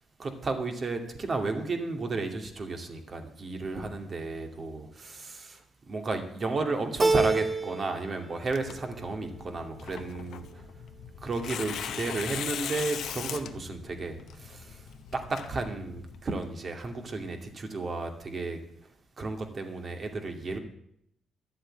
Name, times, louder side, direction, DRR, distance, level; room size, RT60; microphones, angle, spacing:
voice 1, 0.2-10.6 11.2-18.6 19.2-20.6, right 3 dB, 40° right, 5 dB, 2.3 m, -33 dB
Keyboard (musical), 7.0-8.1 8.4-9.2, right 3 dB, 25° right, 1.0 m, -28 dB
Tearing, 8.5-16.2, left 9 dB, 75° left, 0.9 m, -40 dB
12.0 x 7.7 x 9.0 m, 0.75 s
cardioid pair, 90°, 0 cm